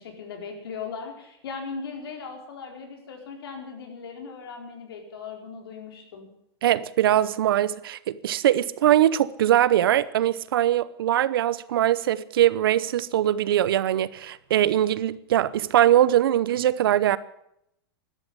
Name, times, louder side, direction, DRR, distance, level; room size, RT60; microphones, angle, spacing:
voice 1, 0.0-6.3, left 5 dB, 65° left, 4.5 m, -38 dB
voice 2, 6.6-17.2, right 12 dB, 60° right, 0.9 m, -22 dB
13.5 x 12.0 x 8.4 m
supercardioid pair, 180°, 13 cm